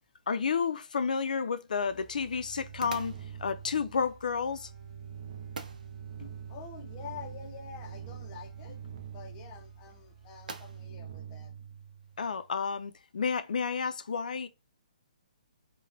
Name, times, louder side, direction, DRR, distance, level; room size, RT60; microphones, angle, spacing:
voice 1, 0.3-4.7 6.2-6.3 12.2-14.5, left 5 dB, 80° left, 0.3 m, -31 dB
sound 1, 0.6-12.3, right 3 dB, 85° right, 0.6 m, -52 dB
sound 2, 1.6-11.2, equal, 10° right, 1.2 m, -59 dB
sound 3, 1.8-12.5, right 8 dB, 40° right, 0.4 m, -45 dB
voice 2, 6.5-8.8 9.1-11.5, left 6 dB, 20° left, 0.5 m, -47 dB
3.0 x 2.1 x 2.6 m
hypercardioid pair, 165°, 4 cm